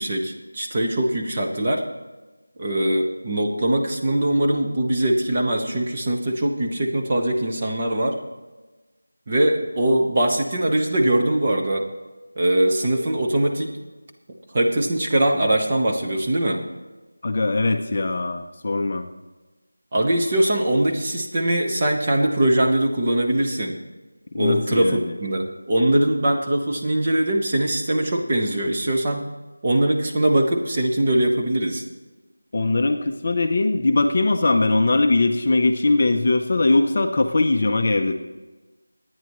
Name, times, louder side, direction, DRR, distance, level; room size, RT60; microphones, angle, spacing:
voice 1, 0.0-1.8 2.6-8.2 9.3-11.9 12.4-13.8 14.5-16.6 19.9-23.8 24.3-29.3 29.6-31.8, right 1 dB, 20° right, 1 dB, 1.0 m, -21 dB
voice 2, 17.2-19.1 24.3-25.1 32.5-38.1, left 2 dB, 30° left, 5 dB, 0.6 m, -20 dB
23.0 x 9.5 x 3.1 m, 1.2 s
figure-of-eight pair, 175°, 0 cm